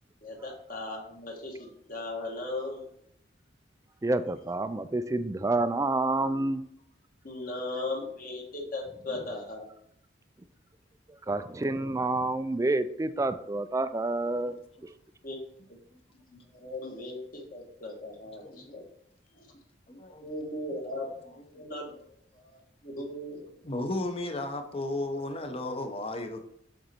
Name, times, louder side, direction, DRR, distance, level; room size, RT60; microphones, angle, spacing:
voice 1, 0.2-2.8 7.2-9.7 15.2-15.4 15.7-15.8 16.3-18.8 19.4-19.5 20.2-23.4, left 2 dB, 50° left, 1.6 m, -38 dB
voice 2, 4.0-6.6 11.1-14.5 14.8-14.9, right 2 dB, 15° right, 0.3 m, -28 dB
voice 3, 14.2-14.6 18.4-18.9 19.9-20.3 20.7-20.8 23.6-26.4, left 2 dB, 30° left, 0.8 m, -34 dB
7.7 x 4.0 x 4.4 m
head